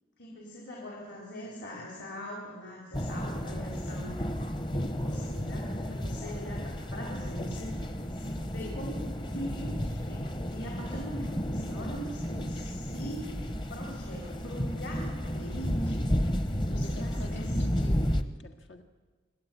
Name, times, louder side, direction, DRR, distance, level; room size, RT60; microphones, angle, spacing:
voice 1, 0.2-4.3 4.7-16.1 16.6-17.5, equal, 65° left, -2 dB, 4.2 m, -42 dB
sound 1, 2.9-18.2, equal, 25° left, 0.8 m, -32 dB
voice 2, 16.7-18.1 18.4-18.8, left 1 dB, 85° left, 5 dB, 1.7 m, -46 dB
26.0 x 12.0 x 9.4 m, 1.4 s
head